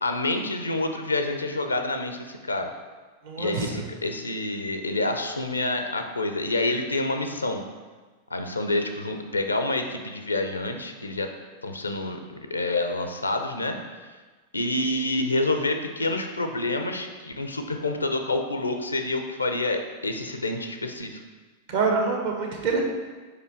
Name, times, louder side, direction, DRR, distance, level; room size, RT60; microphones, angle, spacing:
voice 1, 0.0-2.7 3.4-7.6 8.3-11.3 11.6-13.8 14.5-21.2, left 2 dB, 80° left, 6 dB, 0.6 m, -28 dB
voice 2, 3.2-3.6 21.7-22.8, right 4 dB, 55° right, 1 dB, 1.3 m, -25 dB
5.0 x 4.9 x 4.6 m, 1.3 s
figure-of-eight pair, 90°, 0 cm